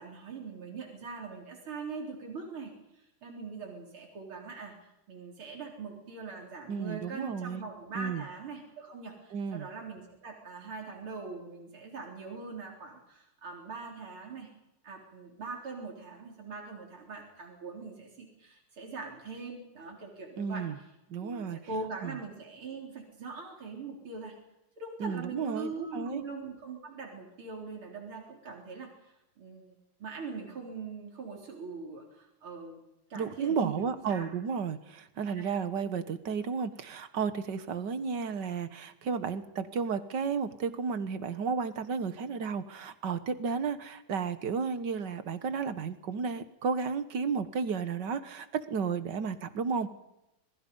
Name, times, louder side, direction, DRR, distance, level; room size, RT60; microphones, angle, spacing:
voice 1, 0.0-4.7 5.1-14.5 14.8-20.8 21.2-24.3 24.8-29.7 30.0-32.8 33.1-34.3 35.3-35.5, right 4 dB, 80° right, 0 dB, 4.9 m, -42 dB
voice 2, 6.7-7.6 8.0-8.2 9.3-9.7 20.4-20.8 21.1-21.6 22.0-22.1 25.0-26.2 33.2-49.9, right 5 dB, 60° right, 12 dB, 1.9 m, -33 dB
27.0 x 21.5 x 5.5 m, 0.90 s
omnidirectional pair, 2.3 m